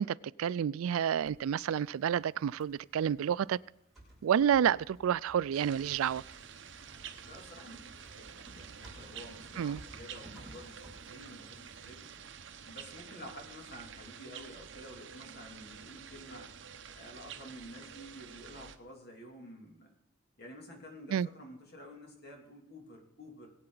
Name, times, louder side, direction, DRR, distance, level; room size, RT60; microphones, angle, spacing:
voice 1, 0.0-3.6 4.2-6.2 9.6-9.8 21.1-21.3, right 8 dB, 90° right, 0.3 m, -29 dB
Typing, 1.1-12.2, right 1 dB, ahead, 5.3 m, -57 dB
sound 1, 5.5-18.8, right 7 dB, 65° right, 0.8 m, -49 dB
voice 2, 7.2-12.1 12.6-16.5 16.9-19.9 20.4-23.5, equal, 50° left, 2.7 m, -50 dB
20.5 x 8.7 x 4.0 m
head